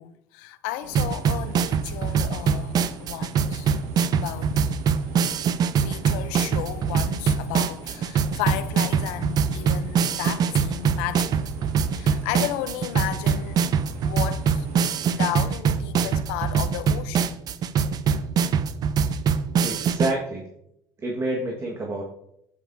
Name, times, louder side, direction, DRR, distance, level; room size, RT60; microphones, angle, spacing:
voice 1, 0.0-3.7 4.1-4.6 5.8-11.5 11.9-13.6 14.0-17.5, left 13 dB, 85° left, 0.6 m, -33 dB
sound 1, 0.8-15.3, right 3 dB, 90° right, 1.6 m, -44 dB
sound 2, 0.9-20.1, right 6 dB, 50° right, 0.6 m, -24 dB
voice 2, 19.6-20.5 21.0-22.0, right 1 dB, 30° right, 1.6 m, -28 dB
9.0 x 8.6 x 2.7 m
supercardioid pair, 90°, 9 cm